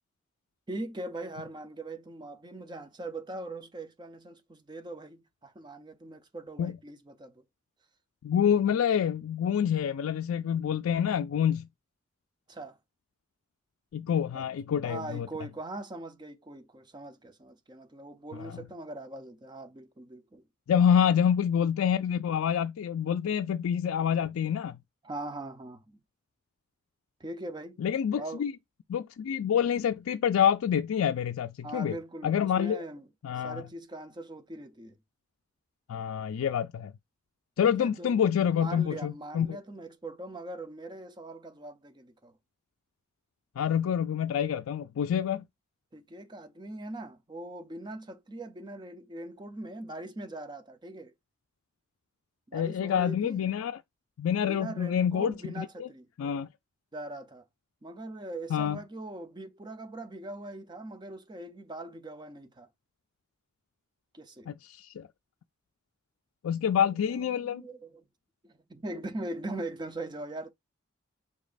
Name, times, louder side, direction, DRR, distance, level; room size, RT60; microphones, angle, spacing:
voice 1, 0.7-7.4 12.5-12.8 14.3-14.4 14.8-20.4 25.0-26.0 27.2-27.8 28.2-28.4 31.6-33.0 33.4-35.0 37.6-42.3 45.9-51.1 52.5-53.4 54.5-56.1 56.9-57.5 57.8-62.7 64.1-64.5 67.0-68.0 68.4-70.5, right 2 dB, 20° right, 0.6 m, -41 dB
voice 2, 8.2-11.7 13.9-15.3 18.4-18.6 20.7-24.8 27.8-28.5 28.9-32.0 32.2-32.8 33.2-33.6 35.9-36.9 37.6-39.6 43.6-45.4 52.5-53.8 54.2-55.9 56.2-56.5 58.5-58.8 64.5-65.1 66.4-67.7, left 8 dB, 85° left, 0.3 m, -27 dB
5.1 x 4.0 x 2.5 m
head